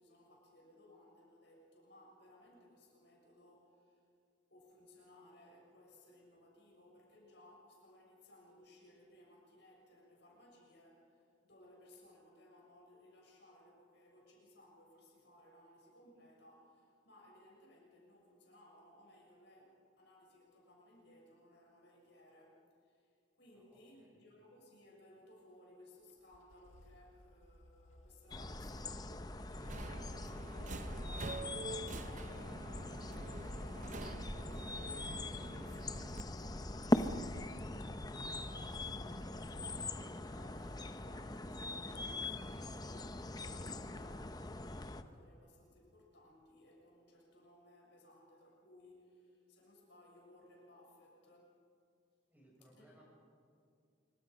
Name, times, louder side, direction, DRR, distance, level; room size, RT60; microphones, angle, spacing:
voice 1, 0.0-4.0 4.5-29.8 30.2-38.1 38.5-44.4 44.7-51.6 52.8-53.0, left 1 dB, 60° left, -2 dB, 6.8 m, -62 dB
voice 2, 23.5-24.2 52.3-53.0, right 1 dB, 10° right, -4 dB, 6.6 m, -65 dB
sound 1, 26.1-36.9, left 1 dB, 85° left, 1.6 m, -58 dB
sound 2, 28.3-45.0, left 1 dB, 20° left, 0.7 m, -41 dB
Subway metro underground, 29.6-36.2, right 2 dB, 40° right, 0.8 m, -47 dB
26.0 x 24.0 x 5.4 m, 2.3 s
head